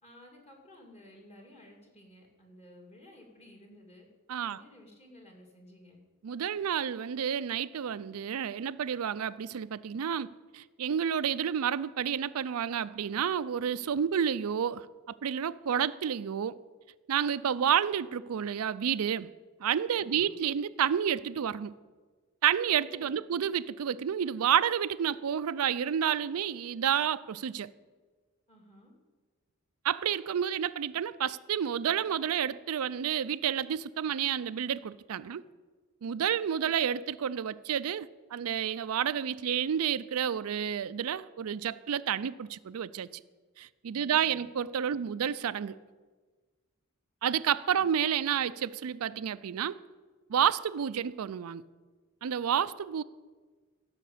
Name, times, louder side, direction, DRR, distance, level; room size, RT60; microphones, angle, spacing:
voice 1, 0.0-4.1 4.5-6.0 19.9-20.3 22.8-23.3 28.5-28.9 43.9-44.5 44.8-45.0 47.7-47.9, left 1 dB, 30° left, 2.7 m, -54 dB
voice 2, 6.2-10.3 10.5-16.6 17.1-19.3 19.6-21.7 22.4-27.7 29.8-35.4 36.0-43.1 43.6-45.7 47.2-49.8 50.3-51.6 52.2-53.0, right 8 dB, 90° right, 0.4 m, -30 dB
15.5 x 5.8 x 8.4 m
head